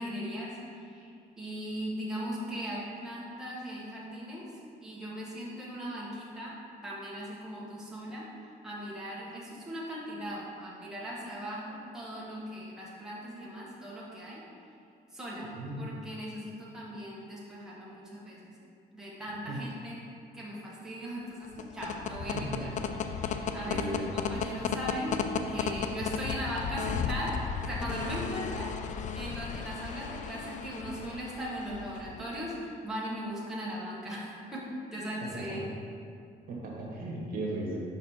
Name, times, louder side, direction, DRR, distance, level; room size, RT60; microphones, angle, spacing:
voice 1, 0.0-4.5 4.8-6.5 6.8-8.3 8.6-14.4 15.1-15.5 15.8-18.6 18.9-20.0 20.3-22.7 23.2-28.7 29.1-35.7, equal, 5° right, -7 dB, 1.3 m, -38 dB
voice 2, 15.4-15.9 19.5-19.6 22.3-22.6 23.7-24.1 35.3-35.6 36.5-37.8, right 2 dB, 60° right, -3 dB, 1.3 m, -36 dB
sound 1, 21.4-32.2, left 6 dB, 45° left, 0.4 m, -35 dB
5.7 x 4.2 x 4.3 m, 2.4 s
cardioid pair, 110°, 17 cm